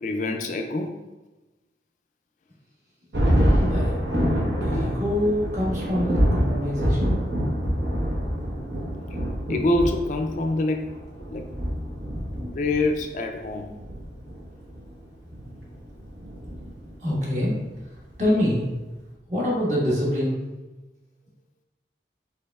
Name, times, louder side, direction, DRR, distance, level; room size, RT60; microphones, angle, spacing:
voice 1, 0.0-1.0 9.1-9.2 9.5-10.9 11.3-11.5 12.5-13.8, left 2 dB, 45° left, 4 dB, 0.3 m, -25 dB
Thunder, 3.1-17.1, equal, 75° right, 1.0 m, -26 dB
voice 2, 3.4-4.0 4.6-7.3 17.0-17.6 18.2-18.6 19.3-20.4, left 1 dB, 40° right, -6 dB, 1.4 m, -25 dB
5.1 x 4.2 x 2.3 m, 1.1 s
head